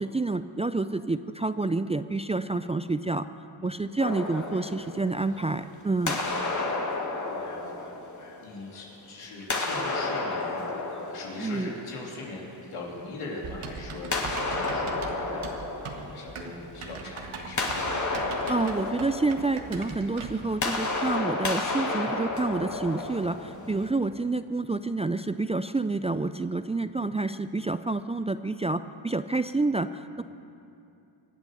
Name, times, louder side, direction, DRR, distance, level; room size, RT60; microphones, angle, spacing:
voice 1, 0.0-3.3 3.6-6.2 11.4-11.7 18.5-30.2, right 3 dB, 15° right, 11 dB, 0.3 m, -28 dB
sound 1, 4.0-5.6 6.1-8.8 9.4-12.3 14.1-16.9 17.2-23.9, left 3 dB, 35° left, 2.1 m, -32 dB
voice 2, 6.7-7.7 8.4-10.6 11.1-17.6 23.5-23.7 30.1-30.2, left 2 dB, 90° left, -3 dB, 3.3 m, -41 dB
Typing, 13.4-20.5, right 4 dB, 75° right, 1.7 m, -40 dB
24.5 x 8.1 x 6.7 m, 2.6 s
cardioid pair, 60°, 49 cm